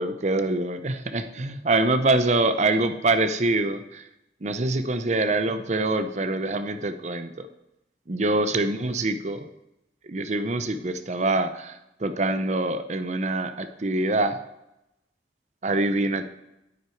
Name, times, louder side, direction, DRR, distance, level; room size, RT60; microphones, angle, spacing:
voice 1, 0.0-4.1 4.4-7.5 8.1-9.5 10.0-14.4 15.6-16.3, right 2 dB, 40° right, 10 dB, 0.7 m, -25 dB
9.4 x 8.2 x 4.6 m, 0.90 s
head